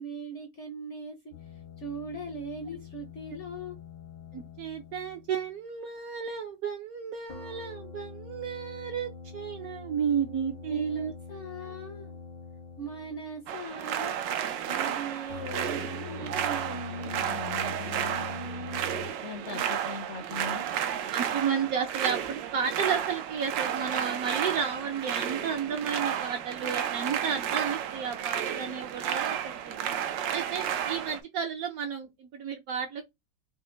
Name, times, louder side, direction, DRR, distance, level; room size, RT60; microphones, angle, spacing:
voice 1, 0.0-1.3 1.8-3.8 10.7-12.2 12.8-14.2 14.7-18.8 19.2-20.7, right 1 dB, 60° left, 0.8 m, -39 dB
sound 1, 1.3-5.6 7.3-13.6 15.3-19.1, left 7 dB, 75° left, 1.4 m, -45 dB
voice 2, 4.3-11.1 21.1-29.8 30.3-33.0, right 7 dB, 65° right, 0.9 m, -32 dB
sound 2, 13.5-31.2, right 9 dB, 85° right, 1.3 m, -32 dB
4.2 x 2.1 x 3.8 m
omnidirectional pair, 2.0 m